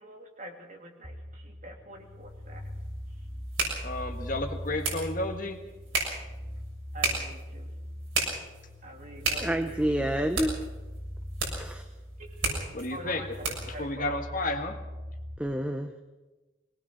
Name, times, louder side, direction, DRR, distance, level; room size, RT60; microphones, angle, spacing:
voice 1, 0.0-2.6 6.9-7.7 8.8-10.3 12.2-13.3 13.7-14.2, right 1 dB, 40° right, 2 dB, 2.9 m, -45 dB
sound 1, 1.0-15.4, equal, 25° right, 2.1 m, -41 dB
sound 2, 2.2-13.8, right 3 dB, 80° right, 6.7 m, -35 dB
voice 2, 3.8-5.6 12.7-14.8, left 2 dB, 40° left, 5 dB, 1.7 m, -32 dB
voice 3, 9.4-10.6 11.5-11.8 15.4-16.0, right 1 dB, 5° right, 6 dB, 0.8 m, -29 dB
22.5 x 19.0 x 6.4 m, 1.2 s
head